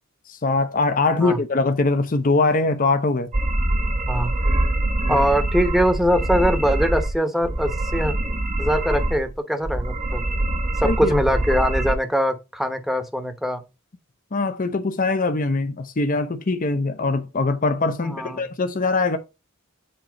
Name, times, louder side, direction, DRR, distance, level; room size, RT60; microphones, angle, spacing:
voice 1, 0.3-3.3 5.1-5.2 10.8-11.1 14.3-19.2, left 3 dB, 40° left, 0.7 m, -22 dB
sound 1, 3.3-7.1 7.4-9.3 9.6-11.9, right 1 dB, 35° right, 0.9 m, -24 dB
voice 2, 5.1-8.1 8.6-10.2 10.8-13.6 18.0-18.5, equal, ahead, 1.0 m, -22 dB
7.7 x 3.0 x 5.2 m
head